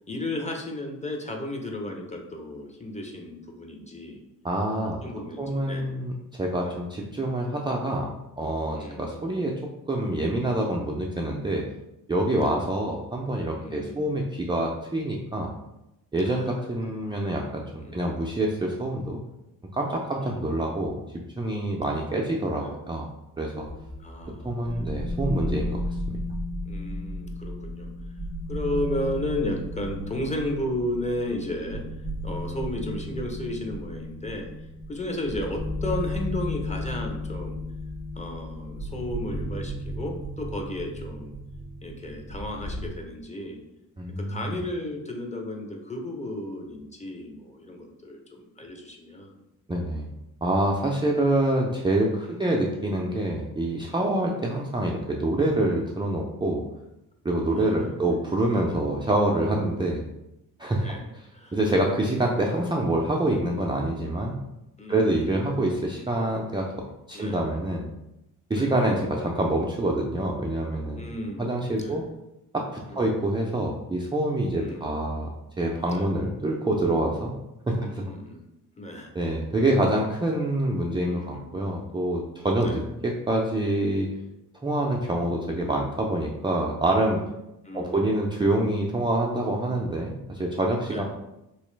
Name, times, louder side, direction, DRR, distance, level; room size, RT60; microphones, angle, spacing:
voice 1, 0.1-4.2 4.8-5.9 6.6-6.8 8.7-9.2 12.3-12.6 13.6-14.1 16.2-16.9 17.8-18.0 20.2-20.4 21.9-22.1 22.6-22.7 24.0-24.8 26.7-27.9 28.5-31.8 32.2-34.5 34.9-37.6 38.1-41.4 41.8-43.6 44.1-49.4 52.2-52.5 57.6-58.1 58.6-58.8 60.8-61.6 64.8-65.5 65.9-66.1 67.1-67.4 68.5-68.7 71.0-72.1 72.9-73.2 74.5-75.0 75.9-76.1 77.7-78.4 78.8-79.1 81.0-81.7 82.6-82.8 87.6-88.2 90.9-91.0, left 1 dB, 15° left, 2 dB, 0.8 m, -34 dB
voice 2, 4.4-5.0 5.4-8.1 8.4-11.7 12.1-15.5 16.1-19.2 19.7-21.0 21.4-23.1 23.4-23.7 24.4-25.8 26.1-26.2 44.0-44.6 49.7-50.1 50.4-56.6 57.2-60.0 60.6-61.0 61.5-64.4 64.9-66.7 67.1-67.9 68.5-71.0 71.4-72.0 72.5-75.3 75.6-77.3 77.7-78.0 79.1-84.1 84.6-87.2 87.7-91.0, right 1 dB, 10° right, -2 dB, 0.4 m, -26 dB
sound 1, 23.5-42.9, left 1 dB, 85° left, 1.4 m, -34 dB
3.1 x 3.0 x 3.2 m, 0.90 s
supercardioid pair, 60°, 39 cm